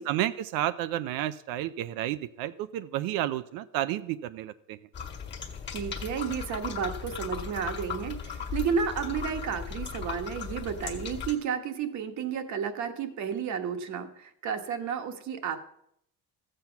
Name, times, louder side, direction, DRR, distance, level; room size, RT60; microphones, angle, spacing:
voice 1, 0.0-4.8, right 13 dB, 80° right, 13 dB, 0.6 m, -31 dB
sound 1, 4.9-11.3, left 7 dB, 30° left, 1.7 m, -37 dB
voice 2, 5.7-15.6, right 7 dB, 55° right, 7 dB, 1.4 m, -32 dB
13.5 x 7.7 x 5.8 m, 0.73 s
cardioid pair, 145°, 35 cm